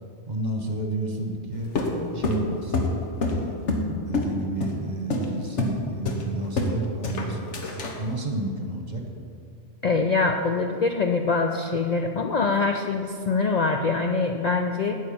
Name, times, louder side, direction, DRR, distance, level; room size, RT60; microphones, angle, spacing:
voice 1, 0.3-1.7 2.1-2.9 3.2-3.6 4.1-9.1, right 1 dB, 40° right, 2 dB, 1.3 m, -31 dB
sound 1, 1.8-4.3 4.6-4.8 5.1-5.3 5.6-5.8 6.1-6.8 7.0-8.0, left 2 dB, 80° left, 1.5 m, -26 dB
voice 2, 9.8-15.0, left 4 dB, 50° left, 4 dB, 0.5 m, -24 dB
9.1 x 6.5 x 8.7 m, 2.3 s
omnidirectional pair, 1.2 m